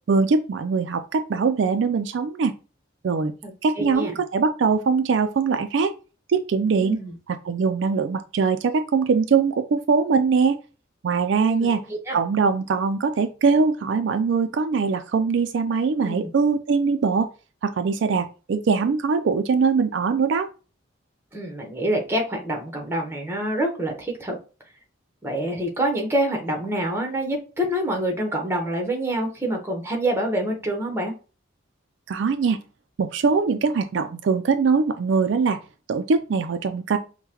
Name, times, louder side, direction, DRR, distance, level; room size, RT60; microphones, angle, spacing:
voice 1, 0.1-2.5 3.0-3.3 3.6-5.9 6.3-7.0 7.3-10.6 11.0-11.8 12.1-17.3 17.6-20.5 32.1-32.6 33.0-35.6 35.9-37.0, right 5 dB, 65° right, 9 dB, 0.4 m, -22 dB
voice 2, 3.4-4.1 6.8-7.1 11.4-12.2 16.0-16.3 21.3-24.4 25.2-31.1, right 1 dB, 15° right, 2 dB, 0.9 m, -26 dB
5.4 x 2.2 x 2.9 m, 0.34 s
head